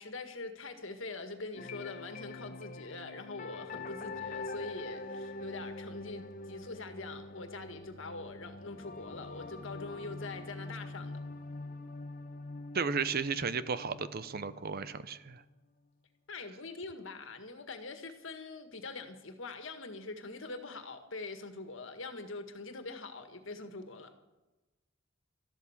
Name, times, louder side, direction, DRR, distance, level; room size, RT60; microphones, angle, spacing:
voice 1, 0.0-11.2 16.3-24.1, left 3 dB, 65° left, 7 dB, 1.8 m, -43 dB
sound 1, 1.6-15.5, left 2 dB, 40° left, 1.0 m, -44 dB
voice 2, 12.7-15.4, right 5 dB, 45° right, 14 dB, 0.7 m, -34 dB
13.0 x 12.5 x 7.3 m, 1.1 s
head